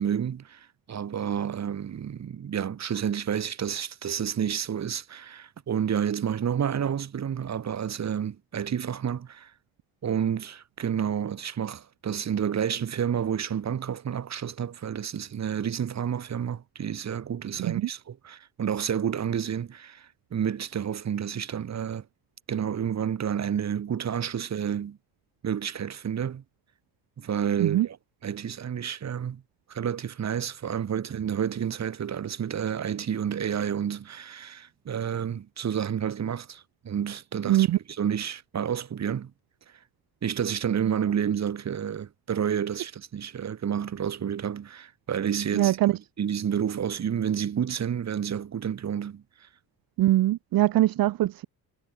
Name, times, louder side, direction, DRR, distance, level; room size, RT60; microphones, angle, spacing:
voice 1, 0.0-9.5 10.0-22.0 22.5-25.0 25.4-26.4 27.2-28.0 28.2-29.4 29.7-39.3 40.2-45.8 46.2-49.2, right 8 dB, 45° right, 5.1 m, -30 dB
voice 2, 17.6-17.9 27.6-27.9 37.5-37.8 45.5-46.0 50.0-51.5, right 15 dB, 60° right, 1.1 m, -22 dB
cardioid pair, 125°, 39 cm